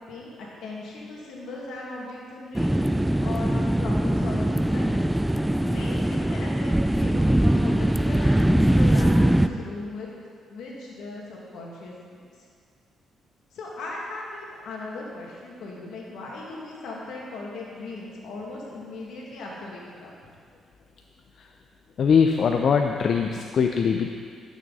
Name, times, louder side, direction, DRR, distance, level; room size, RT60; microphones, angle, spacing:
voice 1, 0.1-5.1 5.6-10.1 10.5-11.9 12.4-12.5 13.5-20.1, left 2 dB, 75° left, -3 dB, 2.1 m, -37 dB
sound 1, 2.5-9.5, right 1 dB, 5° right, 0.3 m, -22 dB
voice 2, 22.0-24.1, left 6 dB, 55° left, 4 dB, 0.5 m, -21 dB
12.0 x 6.3 x 4.1 m, 2.1 s
cardioid pair, 90°, 0 cm